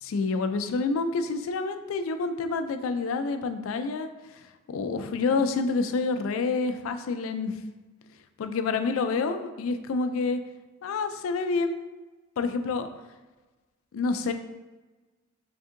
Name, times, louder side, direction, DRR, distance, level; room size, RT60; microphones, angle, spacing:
voice 1, 0.0-4.1 4.7-7.6 8.4-10.4 10.8-11.8 12.4-12.9 13.9-14.3, left 4 dB, 80° left, 8 dB, 0.3 m, -28 dB
3.5 x 2.6 x 3.6 m, 1.2 s
head